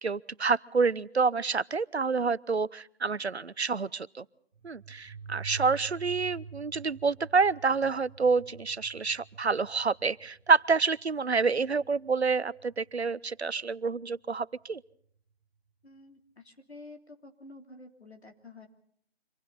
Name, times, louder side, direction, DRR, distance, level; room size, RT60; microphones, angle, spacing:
voice 1, 0.0-4.2 4.6-14.8, right 4 dB, 90° right, 20 dB, 0.8 m, -28 dB
sound 1, 4.5-12.9, right 5 dB, 10° right, 1.9 m, -47 dB
voice 2, 15.8-18.7, left 2 dB, 85° left, 3 dB, 3.5 m, -50 dB
27.0 x 25.5 x 4.1 m, 0.64 s
figure-of-eight pair, 160°, 32 cm